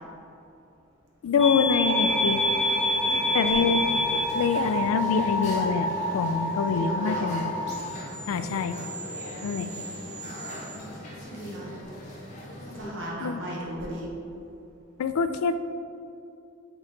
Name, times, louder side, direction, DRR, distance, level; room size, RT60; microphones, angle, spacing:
voice 1, 1.2-2.4 3.3-3.8 4.3-7.5 8.3-8.8 9.4-9.7 13.2-13.4 15.0-15.6, left 5 dB, 85° left, 10 dB, 0.3 m, -25 dB
sound 1, 1.4-10.8, left 1 dB, 35° right, 1.4 m, -28 dB
sound 2, 2.1-12.9, left 1 dB, 35° left, 0.9 m, -40 dB
voice 2, 2.9-3.2 3.5-3.7 6.7-7.4 7.9-8.2 10.7-10.9 11.2-11.7 12.7-14.1, equal, 60° right, -4 dB, 1.1 m, -37 dB
6.3 x 3.9 x 3.9 m, 2.7 s
head